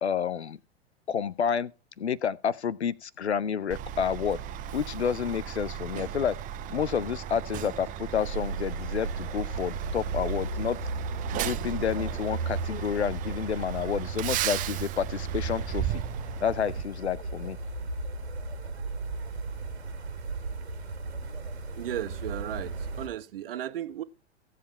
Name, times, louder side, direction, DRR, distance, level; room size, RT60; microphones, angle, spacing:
voice 1, 0.0-0.6 1.1-1.7 2.0-4.4 4.7-6.4 6.7-10.8 11.3-16.0 16.4-17.6, left 7 dB, 75° left, 0.7 m, -29 dB
Truck, 3.7-16.8, right 11 dB, 25° right, 0.7 m, -36 dB
sound 1, 8.2-23.1, right 3 dB, 75° right, 2.0 m, -36 dB
voice 2, 21.7-24.0, right 11 dB, 55° right, 1.1 m, -35 dB
16.0 x 7.5 x 4.3 m
figure-of-eight pair, 95°, 33 cm